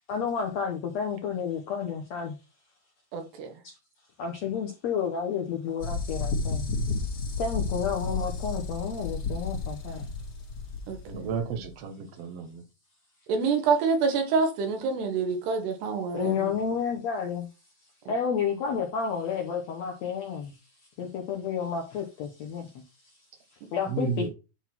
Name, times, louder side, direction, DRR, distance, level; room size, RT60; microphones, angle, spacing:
voice 1, 0.1-2.4 3.6-3.7 4.2-6.7 7.4-10.1 16.1-17.5 18.1-20.6 21.0-22.8 23.7-24.3, left 6 dB, 80° left, 1.5 m, -31 dB
voice 2, 3.1-3.5 10.9-11.3 13.3-16.5 18.1-18.2, right 5 dB, 90° right, 3.6 m, -27 dB
sound 1, 5.8-11.7, left 3 dB, 45° left, 2.4 m, -32 dB
voice 3, 11.1-12.6 23.9-24.3, right 6 dB, 60° right, 1.7 m, -32 dB
10.0 x 4.1 x 4.4 m
omnidirectional pair, 4.6 m